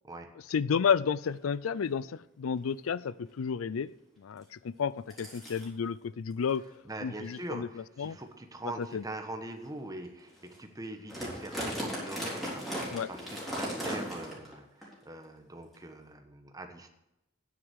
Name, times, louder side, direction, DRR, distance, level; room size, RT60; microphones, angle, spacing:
voice 1, 0.5-3.9 4.2-6.6 7.0-7.7 8.0-8.2 8.8-9.0 12.9-13.1, left 6 dB, 90° left, 19 dB, 0.4 m, -31 dB
sound 1, 1.2-1.3 1.8-2.0 2.6-2.7 3.0-3.3 4.4-4.5 5.1-5.7 6.4-6.6 7.2-7.4 8.0-8.1 8.8-8.9 9.5-9.6 10.0-10.1 10.3-10.6 10.8-14.5 14.8-14.9 15.7-15.8, equal, ahead, 3.7 m, -37 dB
voice 2, 6.8-16.9, right 2 dB, 20° right, 5 dB, 1.2 m, -43 dB
9.7 x 7.8 x 8.1 m, 0.89 s
head